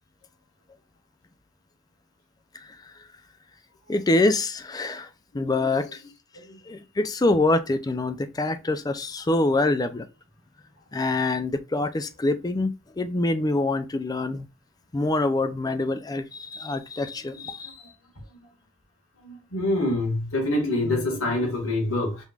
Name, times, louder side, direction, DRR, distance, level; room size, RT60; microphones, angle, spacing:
voice 1, 2.5-2.9 3.9-5.1 5.3-6.0 6.7-10.1 10.9-14.5 14.9-17.7, left 2 dB, 20° left, 0.4 m, -25 dB
voice 2, 5.3-5.8 6.4-6.6 17.3-17.9 19.2-22.2, left 1 dB, 80° left, 1.9 m, -27 dB
5.3 x 3.2 x 2.4 m
head